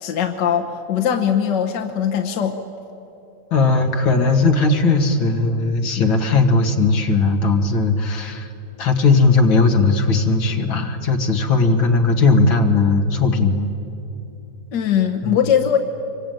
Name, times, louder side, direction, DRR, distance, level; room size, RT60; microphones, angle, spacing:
voice 1, 0.0-2.6 14.7-15.8, left 8 dB, 65° left, 4 dB, 1.8 m, -20 dB
voice 2, 3.5-8.5 8.8-13.7 15.2-15.5, left 3 dB, 80° left, 4 dB, 2.7 m, -17 dB
26.0 x 23.0 x 9.2 m, 2.9 s
omnidirectional pair, 2.1 m